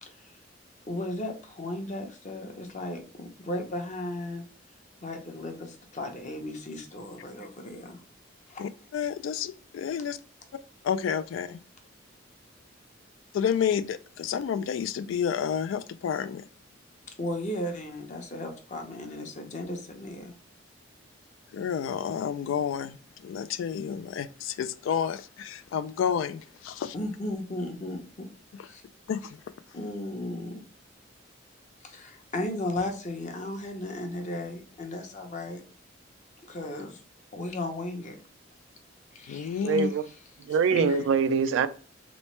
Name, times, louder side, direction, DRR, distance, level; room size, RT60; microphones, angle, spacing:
voice 1, 0.9-4.4 5.0-8.0 8.5-8.6 17.2-20.3 26.9-28.3 28.6-28.8 29.7-30.6 31.8-35.6 36.5-37.0 37.3-38.2 39.1-40.1 40.5-41.1, left 1 dB, 40° left, 0.7 m, -35 dB
voice 2, 8.6-10.2 10.8-11.6 13.3-16.4 21.5-23.0 23.2-26.9 29.1-29.3 39.3-39.9, left 7 dB, 85° left, 0.3 m, -30 dB
voice 3, 39.6-40.0 40.5-41.7, right 5 dB, 80° right, 0.3 m, -24 dB
3.1 x 3.1 x 3.1 m
head